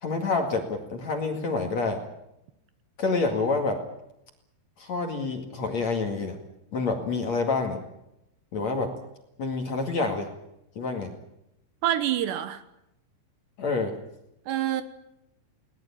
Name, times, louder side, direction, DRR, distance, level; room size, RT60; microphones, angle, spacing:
voice 1, 0.0-2.0 3.0-3.8 4.8-6.4 6.7-7.8 8.5-8.9 9.4-10.3 10.8-11.1 13.6-13.9, left 3 dB, 45° left, 4 dB, 2.8 m, -27 dB
voice 2, 11.8-12.6 14.5-14.8, right 12 dB, 75° right, 12 dB, 3.1 m, -26 dB
21.0 x 19.5 x 8.6 m, 0.83 s
omnidirectional pair, 5.3 m